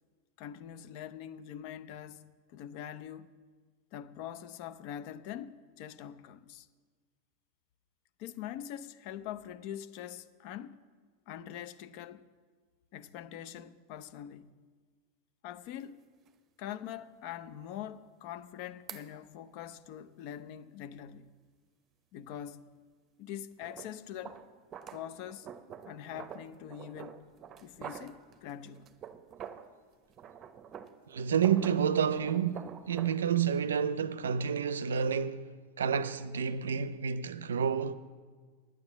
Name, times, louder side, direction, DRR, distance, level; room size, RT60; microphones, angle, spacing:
voice 1, 0.4-3.3 3.9-6.7 8.2-10.8 11.3-12.2 12.9-14.5 15.4-16.0 16.6-21.4 22.1-22.7 23.2-24.4 24.9-25.5 25.9-27.3 27.6-28.9, left 10 dB, 55° left, 0.6 m, -44 dB
sound 1, 15.7-15.8 16.3-16.4 18.9-19.1 23.6-29.8 30.1-33.2, right 8 dB, 35° right, 0.7 m, -47 dB
voice 2, 31.1-35.5 35.8-37.9, right 7 dB, 90° right, 0.5 m, -29 dB
9.7 x 9.3 x 7.2 m
hypercardioid pair, 105°, 0 cm